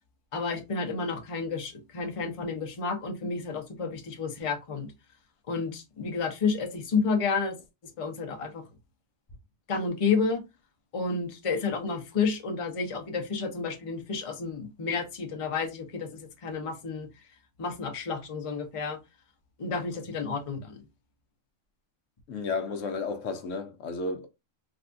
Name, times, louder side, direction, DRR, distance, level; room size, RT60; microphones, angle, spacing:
voice 1, 0.3-4.9 5.5-7.6 8.0-8.6 9.7-10.4 10.9-17.1 17.6-19.0 19.6-20.8, left 4 dB, 35° left, 0.6 m, -30 dB
voice 2, 22.3-24.3, left 4 dB, 70° left, 1.0 m, -32 dB
3.3 x 2.6 x 2.5 m
omnidirectional pair, 1.4 m